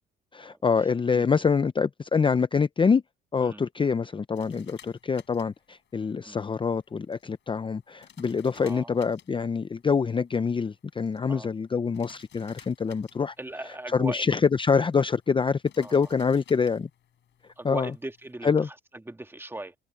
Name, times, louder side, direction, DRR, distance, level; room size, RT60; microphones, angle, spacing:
voice 1, 0.3-3.0 3.3-13.3 13.9-16.9 17.6-17.9 18.4-18.7, left 5 dB, 25° left, 0.6 m, -25 dB
sound 1, 4.3-18.3, left 10 dB, 65° left, 4.9 m, -58 dB
voice 2, 8.6-9.1 11.3-11.5 13.4-14.4 15.8-16.1 17.6-19.7, right 1 dB, 10° right, 1.7 m, -39 dB
cardioid pair, 90°, 20 cm